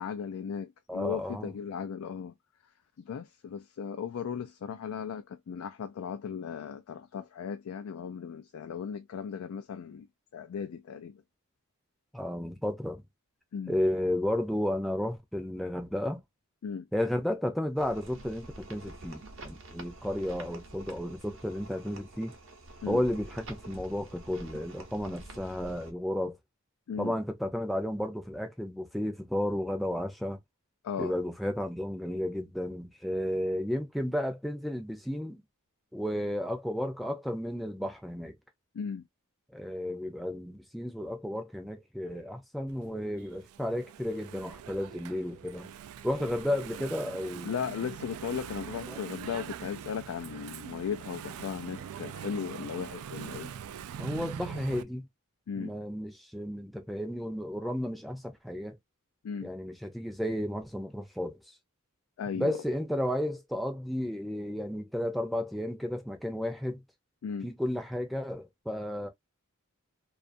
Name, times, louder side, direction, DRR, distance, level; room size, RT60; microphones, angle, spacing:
voice 1, 0.0-2.3 3.0-10.1 10.3-11.2 13.5-13.8 16.6-16.9 22.8-23.0 26.9-27.2 30.8-31.1 38.7-39.1 47.4-53.5 55.5-55.7 59.2-59.5 62.2-62.6 67.2-67.5, left 7 dB, 75° left, 0.3 m, -36 dB
voice 2, 0.9-1.5 12.1-13.0 13.7-16.2 16.9-22.3 22.9-26.4 27.0-30.4 31.0-35.4 35.9-38.3 39.5-45.7 46.0-47.5 48.9-49.0 54.0-55.1 55.6-58.8 59.4-61.3 62.3-66.8 67.4-69.1, left 1 dB, ahead, 0.5 m, -33 dB
sound 1, 17.8-25.9, right 2 dB, 60° right, 0.8 m, -47 dB
Engine / Mechanisms, 42.7-54.8, right 8 dB, 80° right, 0.3 m, -43 dB
2.4 x 2.4 x 2.5 m
head